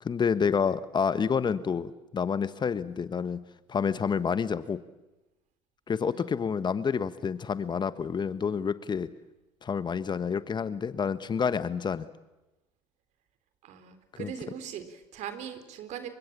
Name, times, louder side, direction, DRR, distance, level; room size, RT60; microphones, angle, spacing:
voice 1, 0.0-3.4 3.7-4.8 5.9-9.1 9.6-12.1 14.2-14.3, left 6 dB, 30° left, 14 dB, 1.3 m, -28 dB
voice 2, 13.6-16.2, right 9 dB, 55° right, 10 dB, 3.8 m, -40 dB
28.5 x 24.0 x 7.5 m, 1.0 s
hypercardioid pair, 65°, 14 cm